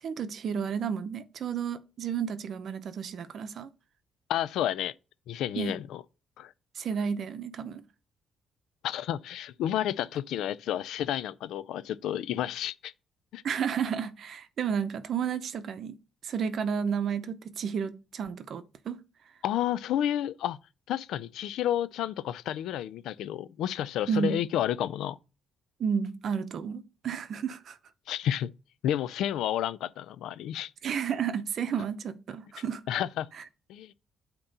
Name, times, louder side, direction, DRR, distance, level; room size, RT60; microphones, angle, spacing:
voice 1, 0.0-3.7 5.5-5.7 6.7-7.8 13.4-16.0 16.2-19.0 24.1-24.4 25.8-27.8 30.8-32.8 33.4-33.5, right 7 dB, 60° right, 0.7 m, -32 dB
voice 2, 4.3-4.9 5.3-6.0 6.4-6.5 8.8-12.9 13.3-13.4 19.4-20.6 20.9-25.2 28.1-28.5 28.8-30.7 32.9-33.3 33.7-33.9, left 11 dB, 85° left, 0.4 m, -31 dB
8.7 x 3.0 x 5.3 m
cardioid pair, 90°, 0 cm